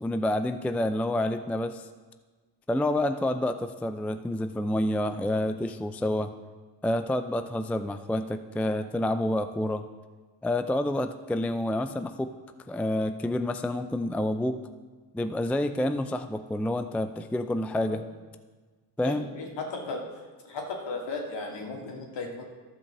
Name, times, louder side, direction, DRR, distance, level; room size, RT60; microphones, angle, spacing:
voice 1, 0.0-1.9 2.7-6.3 6.8-9.8 10.4-12.3 12.7-14.6 15.1-18.1 19.0-19.3, left 1 dB, 5° left, 9 dB, 0.4 m, -28 dB
voice 2, 19.1-20.2 20.4-22.4, left 3 dB, 60° left, 1 dB, 2.4 m, -36 dB
12.5 x 5.2 x 6.8 m, 1.4 s
supercardioid pair, 65°, 49 cm